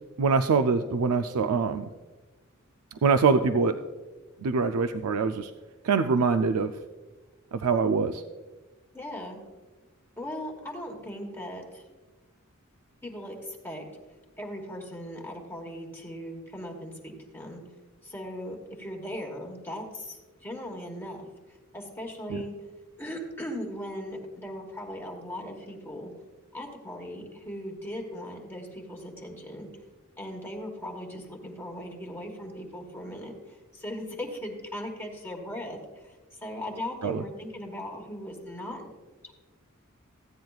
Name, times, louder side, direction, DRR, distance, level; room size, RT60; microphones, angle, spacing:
voice 1, 0.2-1.9 3.0-3.8 4.4-5.5 5.8-6.7 7.5-8.2 22.3-22.4 37.0-37.2, right 4 dB, 85° right, 8 dB, 0.4 m, -24 dB
voice 2, 8.9-9.4 10.2-11.8 13.0-13.9 14.4-17.6 18.0-21.2 21.7-22.5 23.0-26.1 26.5-29.7 30.2-38.9 39.2-39.3, equal, 10° left, 0 dB, 1.2 m, -38 dB
15.0 x 9.3 x 2.3 m, 1.3 s
head